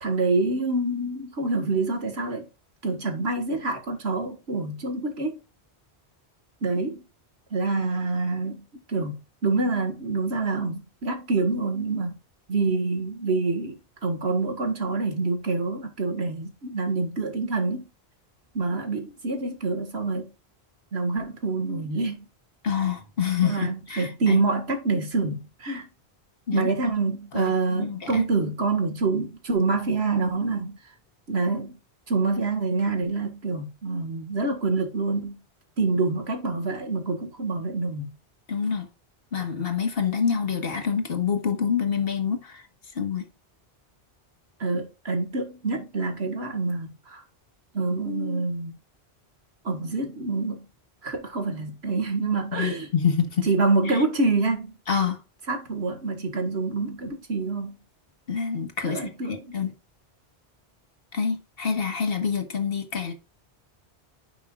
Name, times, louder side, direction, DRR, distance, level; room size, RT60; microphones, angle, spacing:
voice 1, 0.0-2.4 2.8-5.4 6.6-7.0 7.5-12.2 12.5-17.9 18.5-20.3 20.9-22.3 23.4-25.9 26.5-30.8 31.3-31.8 32.1-35.4 35.8-38.1 44.6-47.2 47.7-48.7 49.6-50.7 51.0-52.9 53.4-54.7 55.5-57.8 58.8-59.5, right 3 dB, 80° right, 2.0 m, -26 dB
voice 2, 22.6-24.4 26.5-26.7 27.3-28.2 38.5-38.9 39.3-42.6 43.0-43.3 52.5-53.5 53.9-54.0 54.9-55.2 58.3-59.7 61.1-63.1, left 6 dB, 65° left, 1.6 m, -27 dB
10.0 x 5.9 x 2.4 m
omnidirectional pair, 1.1 m